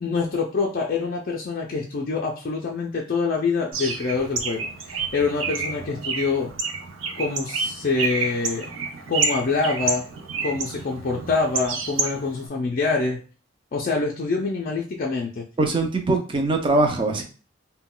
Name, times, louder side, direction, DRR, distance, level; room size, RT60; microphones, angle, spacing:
voice 1, 0.0-6.5 7.2-8.7 9.1-10.0 10.4-13.2 13.7-15.4, left 4 dB, 45° left, -2 dB, 0.4 m, -25 dB
Bird, 3.7-12.5, right 4 dB, 85° right, 0.5 m, -29 dB
voice 2, 15.6-17.2, right 2 dB, 25° right, 4 dB, 0.4 m, -22 dB
2.2 x 2.1 x 3.7 m, 0.36 s
head